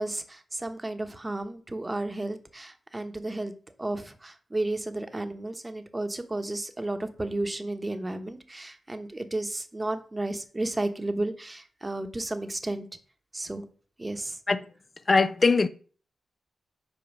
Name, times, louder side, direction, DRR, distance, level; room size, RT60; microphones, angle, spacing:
voice 1, 0.0-3.5 3.8-12.9 13.3-13.7 14.0-14.4, right 2 dB, 20° right, 1.0 m, -33 dB
voice 2, 15.1-15.7, left 4 dB, 40° left, 0.4 m, -21 dB
5.3 x 4.6 x 6.0 m
cardioid pair, 70°, 0 cm